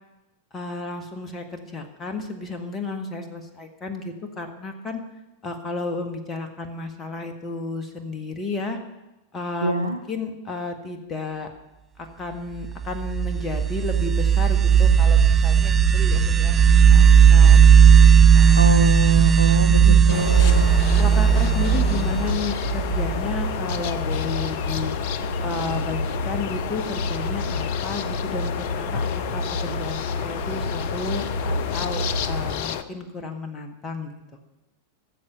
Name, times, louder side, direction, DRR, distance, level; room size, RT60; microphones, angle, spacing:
voice 1, 0.5-5.0 5.4-8.8 9.3-11.5 12.0-17.7 18.3-18.6 19.7-20.6 21.0-24.9 25.4-34.2, left 3 dB, 20° left, 5 dB, 1.6 m, -32 dB
voice 2, 9.6-10.0 18.6-20.7, right 1 dB, 80° right, 7 dB, 0.6 m, -25 dB
sound 1, 12.8-23.4, right 8 dB, 20° right, 0.5 m, -15 dB
sound 2, 14.7-32.5, left 1 dB, 65° left, 1.6 m, -30 dB
sound 3, 20.1-32.8, left 9 dB, 50° left, 0.6 m, -31 dB
16.0 x 7.5 x 6.7 m, 0.99 s
figure-of-eight pair, 90°, 0 cm